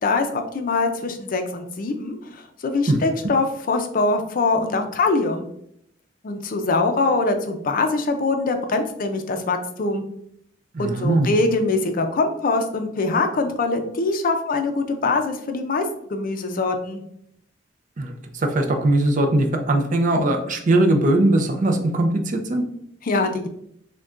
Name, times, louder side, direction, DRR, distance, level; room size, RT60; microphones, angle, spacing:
voice 1, 0.0-5.5 6.2-10.0 10.8-17.0 23.0-23.5, left 3 dB, 45° left, 6 dB, 0.4 m, -23 dB
voice 2, 10.7-11.3 18.0-22.6, right 1 dB, 40° right, 5 dB, 0.5 m, -20 dB
6.2 x 2.2 x 2.4 m, 0.73 s
head